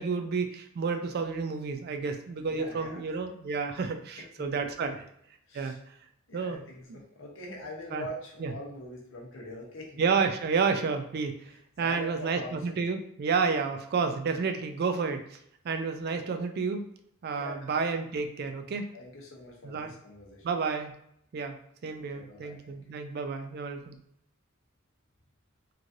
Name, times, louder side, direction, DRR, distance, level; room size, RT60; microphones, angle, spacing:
voice 1, 0.0-5.0 5.5-5.7 6.3-6.6 6.9-7.0 7.9-8.1 8.4-8.5 10.0-11.5 11.8-15.4 15.6-16.8 17.2-18.9 19.6-19.9 20.4-20.9 21.3-24.0, right 5 dB, 50° right, 7 dB, 0.3 m, -30 dB
voice 2, 2.5-3.0 4.2-5.0 5.5-5.8 6.3-10.0 11.5-12.8 17.3-17.7 18.9-20.6 22.1-22.9, left 1 dB, 70° left, -1 dB, 0.7 m, -44 dB
3.1 x 2.5 x 2.6 m, 0.70 s
head